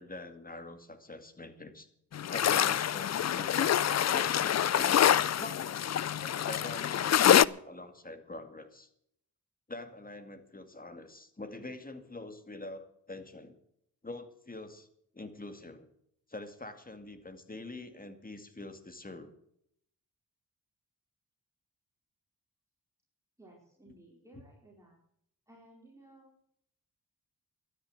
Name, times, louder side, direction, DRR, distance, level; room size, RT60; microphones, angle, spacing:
voice 1, 0.0-1.9 2.3-5.9 6.2-8.9 9.7-13.6 14.0-14.9 15.1-15.9 16.3-19.3 23.9-24.0, left 2 dB, 25° left, 8 dB, 2.3 m, -45 dB
sound 1, 2.1-7.5, left 10 dB, 50° left, 0.5 m, -26 dB
voice 2, 23.4-25.0 25.5-26.3, right 1 dB, 10° right, -3 dB, 4.5 m, -57 dB
12.5 x 10.0 x 7.8 m, 0.71 s
cardioid pair, 65°, 36 cm